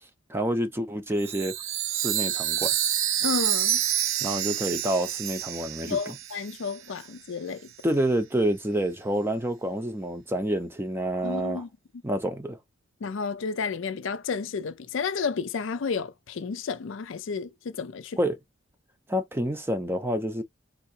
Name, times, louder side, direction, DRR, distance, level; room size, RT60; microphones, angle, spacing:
voice 1, 0.3-1.5 1.9-2.7 4.2-6.0 7.8-11.6 12.0-12.6 18.2-18.4 19.1-20.4, right 1 dB, 10° right, 0.6 m, -28 dB
Chime, 1.2-6.7, right 11 dB, 65° right, 0.5 m, -28 dB
voice 2, 3.2-3.8 5.9-7.7 11.2-11.7 13.0-18.2, left 5 dB, 60° left, 0.4 m, -31 dB
3.6 x 2.8 x 2.7 m
head